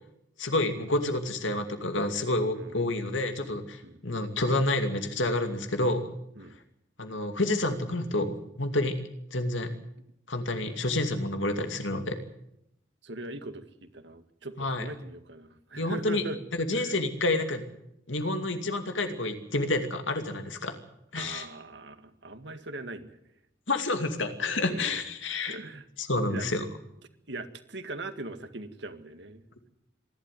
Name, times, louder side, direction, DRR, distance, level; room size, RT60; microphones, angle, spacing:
voice 1, 0.4-6.1 7.0-9.0 9.3-9.7 10.3-12.2 14.6-14.9 15.8-16.2 16.5-17.6 18.1-20.8 21.1-21.5 23.7-25.6 26.0-26.6, left 2 dB, 75° left, 7 dB, 2.5 m, -29 dB
voice 2, 13.0-16.4 16.7-16.9 21.1-23.2 24.7-25.0 25.4-25.9 26.3-26.5 27.3-29.4, right 2 dB, 65° right, 9 dB, 1.9 m, -40 dB
26.0 x 12.0 x 9.3 m, 0.79 s
head